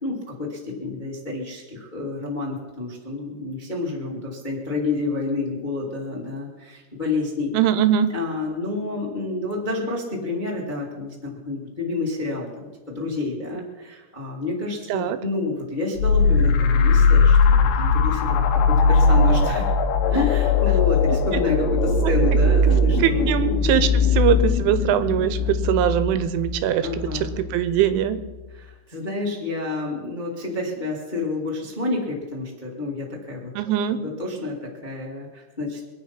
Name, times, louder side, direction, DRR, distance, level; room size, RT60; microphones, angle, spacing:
voice 1, 0.0-7.5 8.1-19.7 20.1-23.3 25.4-25.5 26.8-27.3 28.5-33.5 33.9-35.8, left 3 dB, 20° left, -3 dB, 1.4 m, -29 dB
voice 2, 7.5-8.1 14.9-15.2 23.0-26.9 27.5-28.2 33.6-34.0, right 10 dB, 80° right, 11 dB, 3.2 m, -21 dB
sound 1, 16.0-27.3, left 4 dB, 80° left, 3.5 m, -19 dB
24.0 x 9.3 x 5.8 m, 1.2 s
omnidirectional pair, 5.5 m